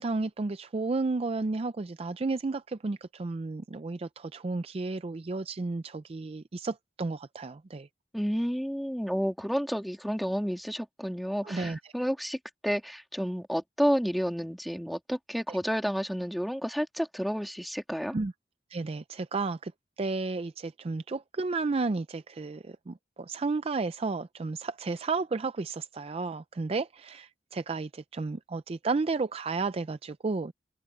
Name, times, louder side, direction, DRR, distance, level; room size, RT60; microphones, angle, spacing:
voice 1, 0.0-7.9 11.4-11.8 15.5-15.6 18.1-18.3 18.7-19.7 20.0-30.5, right 3 dB, 35° right, 0.4 m, -32 dB
voice 2, 8.1-12.4 12.6-18.2, equal, ahead, 2.1 m, -30 dB
open air
head